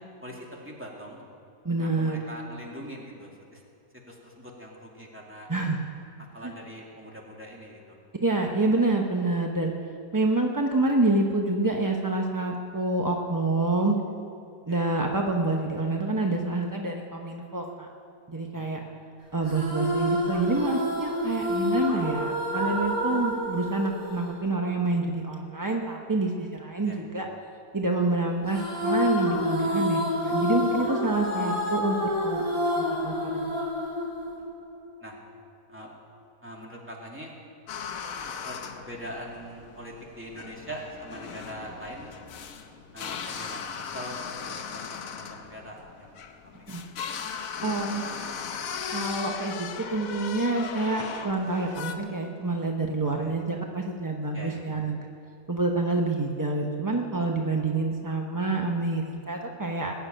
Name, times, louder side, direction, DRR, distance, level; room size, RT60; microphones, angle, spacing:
voice 1, 0.2-1.2 1.8-3.6 4.1-5.5 6.3-8.0 14.7-14.8 18.5-18.9 21.4-21.5 26.9-27.0 30.4-30.5 34.4-34.5 35.0-35.2 35.7-35.9 36.4-37.3 38.4-42.2 42.9-46.2 46.6-46.8 53.0-53.4 54.3-54.6 57.4-57.6, equal, 5° right, -2 dB, 2.2 m, -42 dB
voice 2, 1.6-2.2 5.5-5.8 6.4-6.5 8.2-9.7 10.1-14.0 14.7-17.9 18.3-18.8 19.3-27.3 27.7-32.4 32.8-33.7 46.7-46.8 47.6-48.0 48.9-55.0 55.5-59.9, right 2 dB, 25° right, 1 dB, 0.4 m, -27 dB
sound 1, 19.4-25.0 28.5-34.9, left 1 dB, 50° right, 3.7 m, -28 dB
sound 2, 37.7-52.0, left 6 dB, 60° left, 1.2 m, -38 dB
20.0 x 6.9 x 9.1 m, 2.5 s
omnidirectional pair, 1.9 m